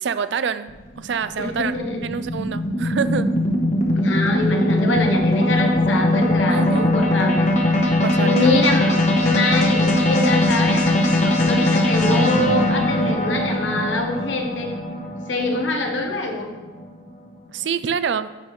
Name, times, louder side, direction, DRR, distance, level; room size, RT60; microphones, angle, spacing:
voice 1, 0.0-3.3 6.5-6.9 8.0-8.5 17.5-18.3, right 6 dB, 70° right, 13 dB, 0.4 m, -26 dB
sound 1, 0.7-17.1, left 1 dB, 40° left, 1.0 m, -20 dB
voice 2, 1.4-2.0 3.9-7.5 7.9-14.7 15.3-16.5, left 2 dB, 85° left, 2 dB, 1.2 m, -24 dB
10.5 x 5.8 x 3.2 m, 1.2 s
head